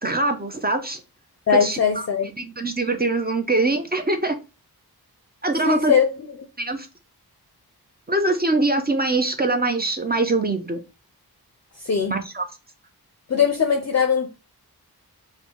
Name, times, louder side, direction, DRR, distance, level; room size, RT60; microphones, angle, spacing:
voice 1, 0.0-1.0 1.5-1.8 2.4-4.4 5.4-6.0 6.6-6.9 8.1-10.8 12.1-12.5, right 2 dB, 25° right, 0.5 m, -23 dB
voice 2, 1.5-2.3 5.6-6.1 11.8-12.2 13.3-14.3, left 6 dB, 45° left, 0.5 m, -20 dB
4.3 x 2.1 x 2.8 m
wide cardioid pair, 80°, 39 cm